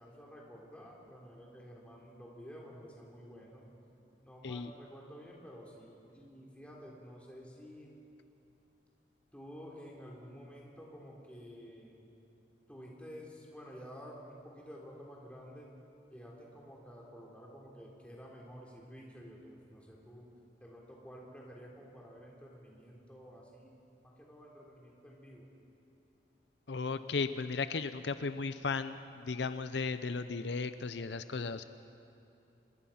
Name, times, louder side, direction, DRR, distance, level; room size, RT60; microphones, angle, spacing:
voice 1, 0.0-3.7 4.2-7.9 9.3-12.0 12.7-15.7 16.1-20.2 20.6-23.7 24.0-25.5, equal, 5° left, -3 dB, 3.6 m, -51 dB
voice 2, 26.7-31.6, left 4 dB, 80° left, 11 dB, 0.6 m, -35 dB
26.0 x 21.0 x 5.8 m, 2.8 s
head